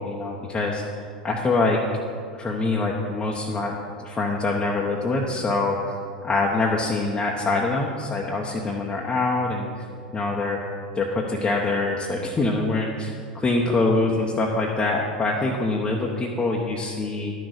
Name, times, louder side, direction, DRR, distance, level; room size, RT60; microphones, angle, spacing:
voice 1, 0.0-1.8 2.4-3.8 4.0-6.0 6.2-9.7 10.1-10.6 10.9-17.3, left 3 dB, 20° left, -2 dB, 1.0 m, -24 dB
11.5 x 6.4 x 6.5 m, 2.2 s
figure-of-eight pair, 85°, 5 cm